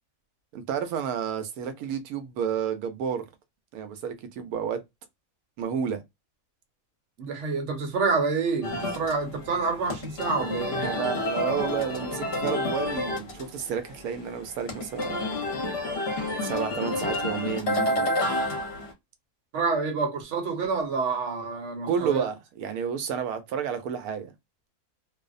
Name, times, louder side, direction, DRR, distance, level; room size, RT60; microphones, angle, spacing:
voice 1, 0.5-3.3 3.7-4.8 5.6-6.0 10.8-15.2 16.4-18.1 21.9-24.3, right 7 dB, 85° right, 1.1 m, -31 dB
voice 2, 7.2-10.9 19.5-22.3, right 4 dB, 60° right, 1.0 m, -28 dB
sound 1, 8.6-18.9, left 1 dB, 50° left, 0.9 m, -30 dB
2.6 x 2.0 x 2.3 m
omnidirectional pair, 1.5 m